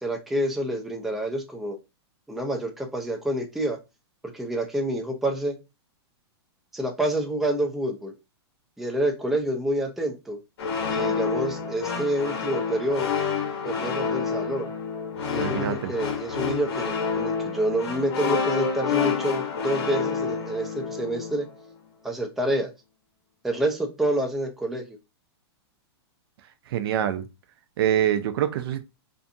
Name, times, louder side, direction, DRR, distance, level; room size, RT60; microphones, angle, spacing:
voice 1, 0.0-1.8 2.3-3.8 4.3-5.5 6.7-8.1 8.8-10.4 10.9-13.1 13.6-14.7 15.2-21.5 22.0-22.7 23.4-25.0, right 1 dB, ahead, 0.4 m, -28 dB
sound 1, 10.6-21.5, left 5 dB, 65° left, 1.1 m, -28 dB
voice 2, 15.4-15.9 26.7-27.3 27.8-28.8, right 10 dB, 60° right, 0.4 m, -25 dB
2.6 x 2.5 x 2.4 m
hypercardioid pair, 140°, 14 cm